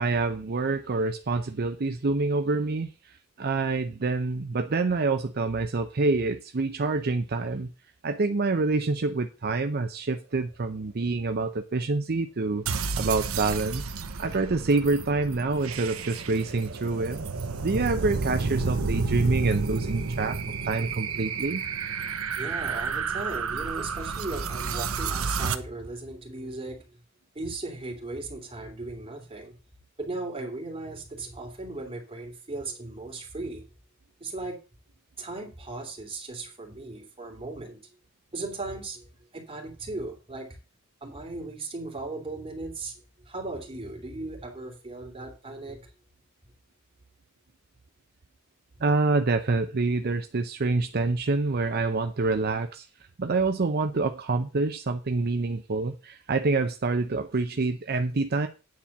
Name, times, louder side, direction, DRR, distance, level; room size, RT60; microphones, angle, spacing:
voice 1, 0.0-7.7 8.0-12.6 13.0-13.8 14.2-17.2 17.6-20.4 20.6-21.6 48.8-52.9 53.2-58.5, right 3 dB, 50° right, 0.6 m, -27 dB
sound 1, 12.7-25.6, right 4 dB, 85° right, 0.9 m, -31 dB
voice 2, 22.3-26.8 27.3-29.6 30.0-33.6 34.2-34.6 35.2-37.8 38.3-39.1 39.3-40.6 41.0-42.9 43.2-45.9, right 2 dB, 25° right, 3.0 m, -37 dB
9.5 x 4.3 x 7.1 m
head